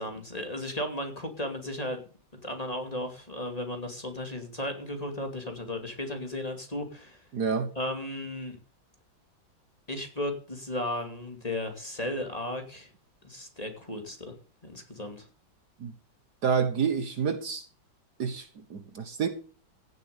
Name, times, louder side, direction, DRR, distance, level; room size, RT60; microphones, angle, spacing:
voice 1, 0.0-2.0 2.4-7.2 7.7-8.6 9.9-12.9 13.2-14.3 14.6-15.3, left 1 dB, 20° left, 2.6 m, -35 dB
voice 2, 7.3-7.7 15.8-15.9 16.4-17.6 18.2-19.3, right 6 dB, 55° right, 1.7 m, -28 dB
16.5 x 7.7 x 6.8 m
omnidirectional pair, 2.1 m